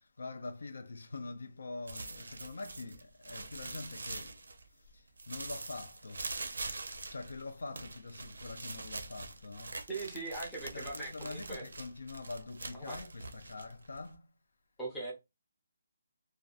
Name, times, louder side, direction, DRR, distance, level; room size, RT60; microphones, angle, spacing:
voice 1, 0.2-4.4 5.3-6.2 7.1-9.7 10.7-14.3, left 3 dB, 70° left, 0.4 m, -44 dB
sound 1, 1.9-4.9 5.2-14.1, right 3 dB, 90° right, 0.5 m, -44 dB
voice 2, 9.9-11.7 12.7-13.1 14.8-15.1, right 2 dB, 5° left, 0.5 m, -40 dB
2.6 x 2.2 x 2.3 m
hypercardioid pair, 180°, 0 cm